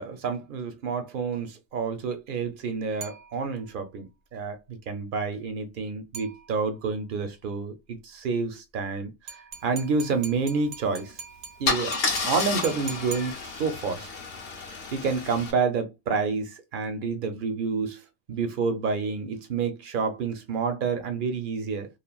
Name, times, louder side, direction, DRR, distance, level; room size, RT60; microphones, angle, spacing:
voice 1, 0.0-11.2 11.6-14.1 14.9-18.0 18.3-21.9, right 4 dB, 55° right, 0.6 m, -29 dB
sound 1, 3.0-3.8 6.1-6.9 9.3-13.9, right 6 dB, 85° right, 1.1 m, -43 dB
Car / Engine starting / Idling, 10.9-11.1 11.6-15.5, left 4 dB, 50° left, 0.7 m, -31 dB
3.2 x 2.1 x 2.3 m
omnidirectional pair, 1.3 m